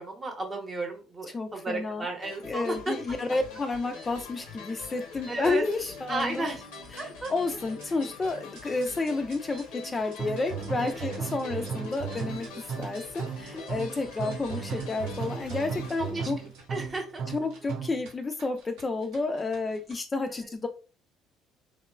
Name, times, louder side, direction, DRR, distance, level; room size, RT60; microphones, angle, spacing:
voice 1, 0.0-2.9 5.3-5.6 6.1-6.6 7.0-7.3 11.0-11.1 14.8-14.9 16.0-17.2, right 2 dB, 30° right, 3 dB, 0.8 m, -34 dB
voice 2, 1.3-2.1 2.4-6.5 7.3-16.4 17.3-20.7, left 3 dB, 30° left, 6 dB, 0.3 m, -31 dB
sound 1, 2.2-17.1, left 4 dB, 85° left, 0.6 m, -44 dB
sound 2, 3.9-19.9, right 3 dB, 85° right, 0.7 m, -55 dB
sound 3, 10.2-18.1, right 6 dB, 55° right, 0.3 m, -36 dB
3.0 x 2.0 x 2.2 m, 0.34 s
supercardioid pair, 80°, 0 cm